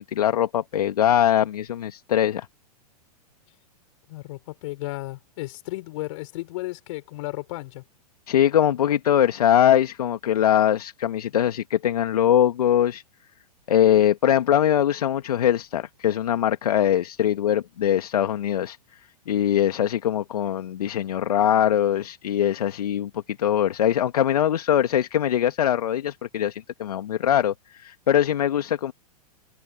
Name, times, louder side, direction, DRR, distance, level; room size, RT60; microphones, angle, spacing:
voice 1, 0.0-2.5 8.3-13.0 13.7-18.8 19.3-28.9, left 10 dB, 70° left, 2.0 m, -22 dB
voice 2, 4.1-7.8, left 20 dB, 55° left, 6.0 m, -34 dB
hypercardioid pair, 105°, 20 cm